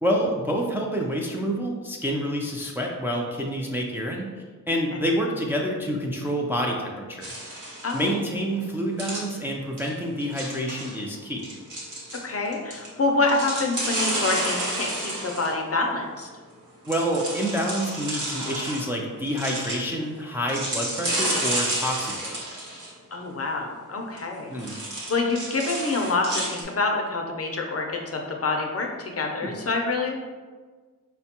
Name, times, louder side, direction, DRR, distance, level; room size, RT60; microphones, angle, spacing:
voice 1, 0.0-4.3 4.7-7.3 7.9-11.5 16.8-22.3 24.5-24.8 29.4-29.5, equal, 5° right, -1 dB, 0.4 m, -28 dB
sound 1, 7.2-8.1 9.0-9.3 9.8-9.9 10.2-11.0 11.4-12.9 13.2-15.5 16.9-18.9 19.3-19.8 20.5-22.9 24.2-24.3 24.6-26.6, right 1 dB, 70° right, 1.0 m, -30 dB
voice 2, 7.8-8.1 12.2-16.3 23.1-24.5 25.1-30.2, left 3 dB, 45° left, 2 dB, 0.5 m, -26 dB
4.6 x 2.1 x 2.8 m, 1.4 s
wide cardioid pair, 85°, 32 cm